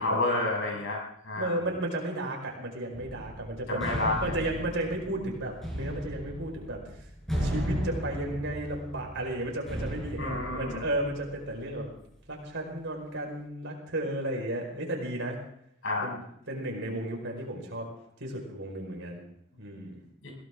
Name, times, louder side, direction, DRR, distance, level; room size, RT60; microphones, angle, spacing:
voice 1, 0.0-1.6 3.7-4.4 10.2-10.8 15.8-16.2 20.2-20.3, left 2 dB, 65° left, -1 dB, 7.0 m, -30 dB
voice 2, 1.4-7.1 7.4-11.9 12.3-15.4 16.0-17.9 18.2-19.2 19.6-20.0, right 1 dB, 60° right, 1 dB, 5.0 m, -34 dB
sound 1, 2.9-11.6, equal, ahead, 5.9 m, -36 dB
21.5 x 17.0 x 3.7 m, 0.71 s
head